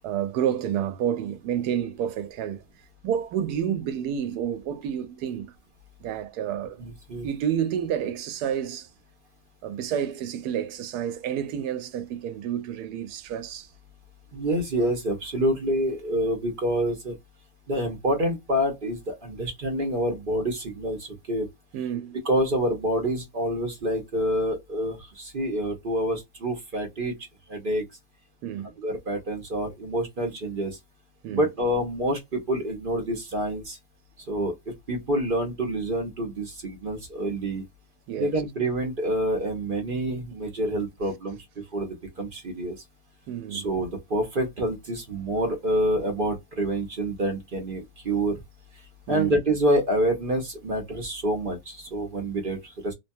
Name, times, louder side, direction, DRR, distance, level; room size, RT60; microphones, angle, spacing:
voice 1, 0.0-2.6 3.0-5.5 6.0-6.8 7.2-8.9 9.6-13.7 21.7-22.2 28.4-28.7 31.2-31.4 38.1-38.3 43.3-43.7 49.1-49.3, right 9 dB, 85° right, 1.1 m, -29 dB
voice 2, 6.8-7.3 14.3-17.1 17.7-21.5 22.2-27.1 27.5-27.8 28.8-30.8 31.3-33.8 34.3-37.6 38.2-41.4 41.7-42.8 43.5-48.4 49.1-52.9, right 1 dB, 45° right, 0.7 m, -27 dB
2.9 x 2.2 x 2.6 m
omnidirectional pair, 1.6 m